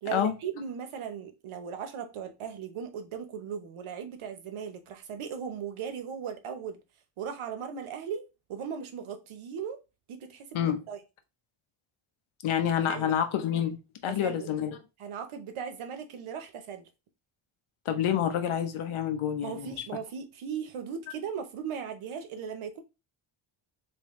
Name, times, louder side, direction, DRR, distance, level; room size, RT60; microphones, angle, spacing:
voice 1, 0.0-6.8 7.2-9.8 10.1-10.6 10.9-11.0 12.9-13.2 14.1-14.5 15.0-16.9 19.4-22.8, right 7 dB, 80° right, 0.9 m, -38 dB
voice 2, 12.4-13.8 14.0-14.8 17.9-19.8, left 9 dB, 80° left, 0.8 m, -28 dB
3.6 x 3.1 x 3.0 m
wide cardioid pair, 175°, 49 cm